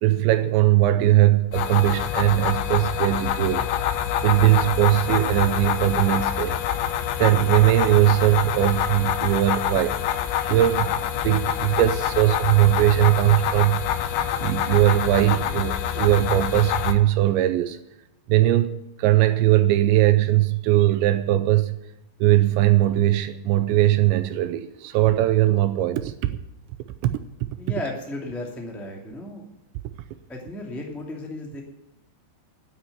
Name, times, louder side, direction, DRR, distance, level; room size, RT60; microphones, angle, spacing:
voice 1, 0.0-3.7 4.2-6.6 7.2-13.8 14.4-17.8 18.3-21.8 22.2-26.3 27.0-27.1 27.4-27.5, right 14 dB, 80° right, 2.8 m, -20 dB
sound 1, 1.5-16.9, left 10 dB, 85° left, 2.1 m, -26 dB
voice 2, 27.6-29.5 30.3-31.6, left 1 dB, ahead, 0.4 m, -34 dB
9.6 x 9.4 x 9.7 m
omnidirectional pair, 5.5 m